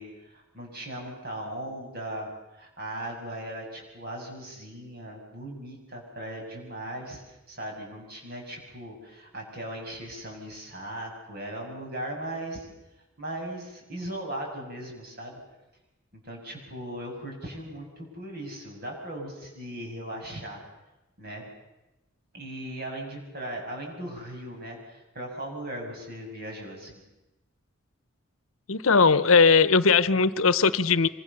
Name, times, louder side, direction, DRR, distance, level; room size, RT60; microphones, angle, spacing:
voice 1, 0.0-12.7 13.2-15.4 16.2-20.6 21.2-21.4 22.3-27.0, right 1 dB, 50° right, 1 dB, 7.4 m, -38 dB
voice 2, 28.7-31.1, left 5 dB, 85° left, 15 dB, 0.9 m, -19 dB
26.0 x 24.5 x 7.0 m, 0.99 s
head